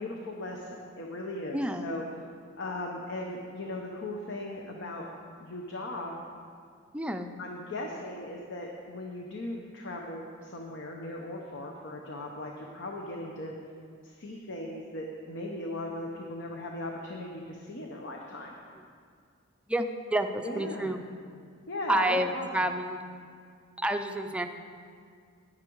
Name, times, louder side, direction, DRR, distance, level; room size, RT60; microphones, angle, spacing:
voice 1, 0.0-2.0 2.6-5.1 5.4-6.2 7.4-13.5 14.0-18.5 20.4-20.9 21.7-22.7, left 1 dB, 60° left, 0 dB, 0.9 m, -38 dB
voice 2, 1.5-1.9 6.9-7.3 19.7-21.0 21.9-23.1 23.8-24.5, right 1 dB, 5° right, 6 dB, 0.5 m, -29 dB
10.0 x 10.0 x 4.6 m, 2.2 s
head